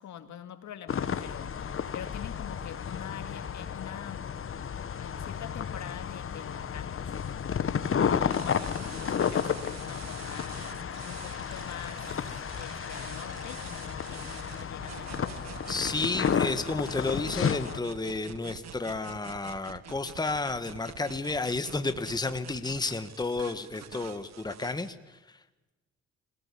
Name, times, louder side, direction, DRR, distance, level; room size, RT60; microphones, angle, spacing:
voice 1, 0.0-1.6 1.9-4.3 5.0-7.1 8.0-10.6 11.0-12.2 12.6-15.3, left 9 dB, 70° left, 9 dB, 2.4 m, -44 dB
sound 1, 0.9-17.8, left 7 dB, 45° left, 1.5 m, -32 dB
sound 2, 8.3-24.9, right 9 dB, 60° right, 1.6 m, -47 dB
voice 2, 15.7-25.4, left 3 dB, 15° left, 10 dB, 1.5 m, -32 dB
27.0 x 18.5 x 8.5 m, 1.1 s
cardioid pair, 90°, 30 cm